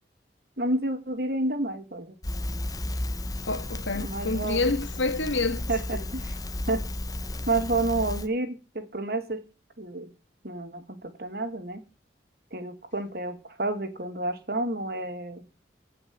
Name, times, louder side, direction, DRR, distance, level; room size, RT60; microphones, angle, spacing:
voice 1, 0.6-2.1 3.9-4.7 5.7-6.2 6.7-6.8 7.5-9.4 9.8-10.1 10.4-11.8 12.5-15.5, right 2 dB, 55° right, 2.5 m, -30 dB
Crackle, 2.2-8.3, left 1 dB, 20° left, 1.0 m, -33 dB
voice 2, 3.5-6.0, left 3 dB, 90° left, 2.0 m, -28 dB
16.0 x 5.9 x 7.8 m
head